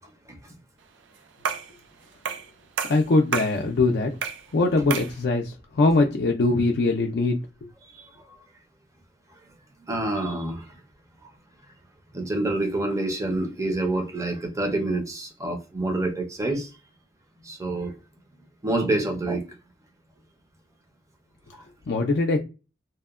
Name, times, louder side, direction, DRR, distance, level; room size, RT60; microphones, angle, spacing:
sound 1, 1.4-1.8 2.3-2.5 2.8-3.6 4.2-4.5 4.9-5.2, right 7 dB, 90° right, 0.4 m, -29 dB
voice 1, 2.9-4.1 4.5-7.4 21.9-22.4, left 3 dB, 65° left, 0.4 m, -22 dB
voice 2, 9.9-10.8 12.1-16.7 17.4-17.9 18.6-19.4, right 2 dB, 15° right, 0.5 m, -27 dB
2.8 x 2.1 x 2.3 m
head